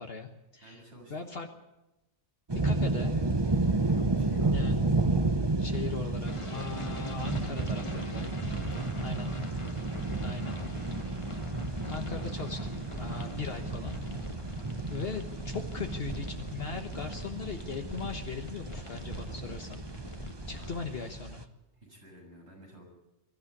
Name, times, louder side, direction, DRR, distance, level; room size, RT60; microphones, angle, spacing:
voice 1, 0.0-0.8 1.1-1.5 2.5-3.2 4.5-4.8 5.6-8.2 9.0-9.3 10.2-10.6 11.5-14.0 14.9-19.9 20.5-21.5, left 5 dB, 60° left, 4 dB, 1.5 m, -39 dB
voice 2, 0.6-1.3 3.9-4.6 8.7-9.4 9.8-10.0 10.6-10.7 14.5-14.8 20.6-20.9 21.7-22.8, right 1 dB, 75° right, -1 dB, 7.8 m, -53 dB
sound 1, 2.5-21.4, right 2 dB, 25° right, 1.0 m, -32 dB
sound 2, 6.3-20.8, left 1 dB, 25° left, 1.7 m, -43 dB
23.0 x 13.5 x 9.8 m, 0.97 s
omnidirectional pair, 1.2 m